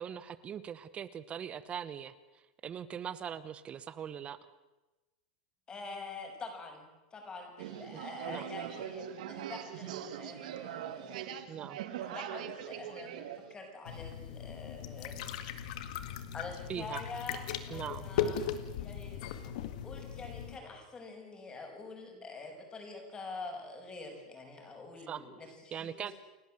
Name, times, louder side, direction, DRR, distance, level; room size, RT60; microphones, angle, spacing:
voice 1, 0.0-2.1 2.6-4.4 7.9-8.0 8.3-8.4 11.5-11.8 16.7-17.0 17.7-18.1 25.1-25.3 25.7-26.1, right 8 dB, 30° right, 15 dB, 1.0 m, -40 dB
voice 2, 5.7-11.3 12.0-15.5 16.3-18.4 18.8-19.5 19.8-26.1, left 3 dB, 20° left, 3 dB, 6.4 m, -46 dB
sound 1, 7.6-13.5, right 10 dB, 75° right, 2.0 m, -42 dB
sound 2, 13.9-20.6, left 8 dB, 70° left, 2.0 m, -38 dB
29.5 x 11.5 x 7.9 m, 1.1 s
supercardioid pair, 130°, 4 cm